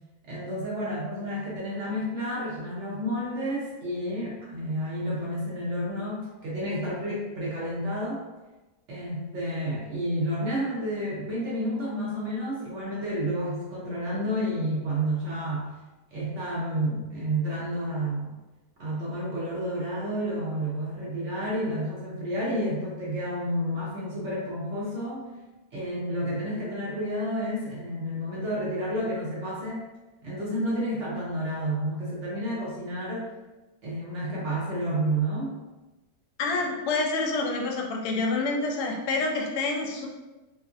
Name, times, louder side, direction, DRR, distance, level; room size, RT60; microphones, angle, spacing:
voice 1, 0.3-8.2 8.9-15.7 16.1-18.4 18.8-25.3 25.7-29.8 30.2-33.3 33.8-35.6, equal, 60° right, -6 dB, 0.9 m, -30 dB
voice 2, 36.4-40.1, left 3 dB, 85° left, 1 dB, 1.1 m, -27 dB
2.8 x 2.4 x 2.4 m, 1.1 s
omnidirectional pair, 1.7 m